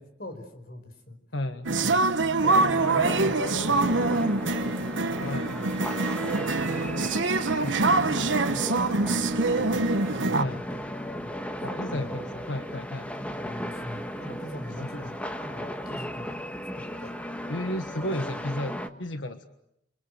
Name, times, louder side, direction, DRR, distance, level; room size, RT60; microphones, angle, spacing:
voice 1, 0.0-1.2 1.8-2.0 2.4-4.5 4.8-7.1 7.7-10.9 11.2-11.4 11.7-12.3 12.7-12.8 13.1-17.2, left 1 dB, 55° left, 8 dB, 5.2 m, -42 dB
voice 2, 1.3-1.7 5.2-5.6 7.6-7.8 10.3-10.6 11.6-13.1 14.8-15.1 17.5-19.5, left 1 dB, 90° left, 7 dB, 1.5 m, -33 dB
sound 1, 1.6-10.4, right 3 dB, 85° right, 1.2 m, -25 dB
sound 2, 2.4-18.9, equal, 5° left, 1.5 m, -36 dB
29.5 x 25.0 x 8.0 m, 0.82 s
head